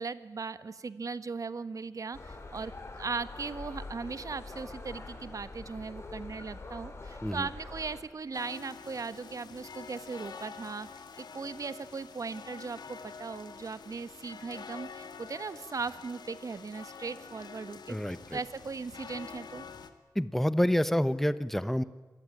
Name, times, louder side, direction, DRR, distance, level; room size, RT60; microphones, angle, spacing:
voice 1, 0.0-10.9 11.2-18.0 18.3-19.6, right 4 dB, 55° right, 14 dB, 1.3 m, -38 dB
sound 1, 2.1-8.0, left 3 dB, 40° left, 5.0 m, -44 dB
sound 2, 8.3-19.9, left 5 dB, 85° left, 2.0 m, -47 dB
voice 2, 17.9-18.4 20.1-21.8, equal, 5° left, 14 dB, 1.1 m, -28 dB
26.0 x 19.5 x 10.0 m, 1.3 s
wide cardioid pair, 95°, 7 cm